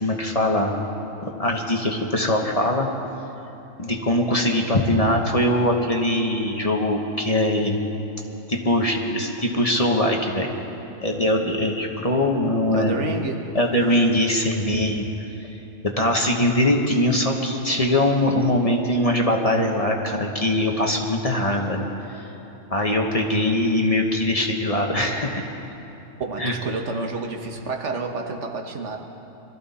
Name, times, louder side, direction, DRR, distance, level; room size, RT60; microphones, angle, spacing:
voice 1, 0.0-0.7 1.4-2.9 3.8-7.8 8.5-10.5 11.0-13.0 13.5-15.1 15.8-21.8 22.7-25.4 26.4-26.6, left 1 dB, 30° left, 1 dB, 1.2 m, -22 dB
voice 2, 12.7-13.6 26.2-29.0, right 3 dB, 65° right, 3 dB, 1.4 m, -29 dB
23.0 x 14.0 x 4.2 m, 2.9 s
omnidirectional pair, 1.3 m